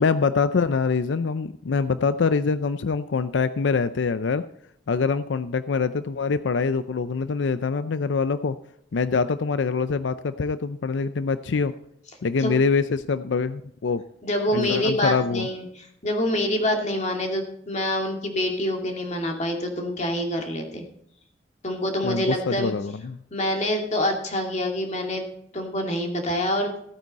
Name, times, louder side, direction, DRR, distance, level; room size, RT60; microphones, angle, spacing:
voice 1, 0.0-4.4 4.9-8.6 8.9-11.7 12.2-14.0 14.5-15.5 22.0-23.2, left 5 dB, 90° left, 13 dB, 0.5 m, -24 dB
voice 2, 14.2-15.7 16.0-20.8 21.6-22.7 23.3-25.3 25.5-26.7, left 1 dB, 40° left, 3 dB, 2.4 m, -26 dB
15.5 x 9.2 x 4.1 m, 0.73 s
head